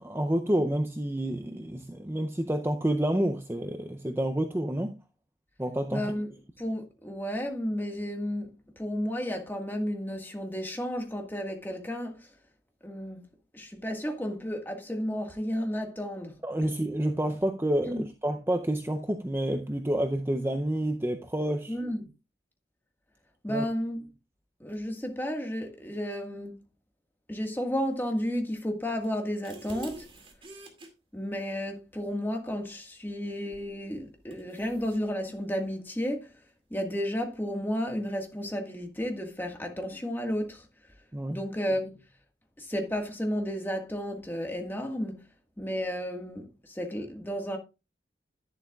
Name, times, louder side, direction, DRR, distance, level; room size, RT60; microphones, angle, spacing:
voice 1, 0.0-5.0 5.6-6.1 16.4-21.8 23.5-23.6 41.1-41.4, right 1 dB, 15° right, 0.5 m, -29 dB
voice 2, 5.9-12.3 12.8-13.2 13.5-16.7 17.8-18.1 21.7-22.1 23.4-24.0 24.6-26.6 27.3-30.1 31.1-36.3 36.7-40.7 41.3-42.0 42.6-45.2 45.6-47.6, equal, 10° left, 1.6 m, -32 dB
sound 1, 29.0-30.9 33.5-33.8 34.3-35.0, right 1 dB, 30° right, 2.3 m, -47 dB
11.0 x 10.5 x 2.4 m
head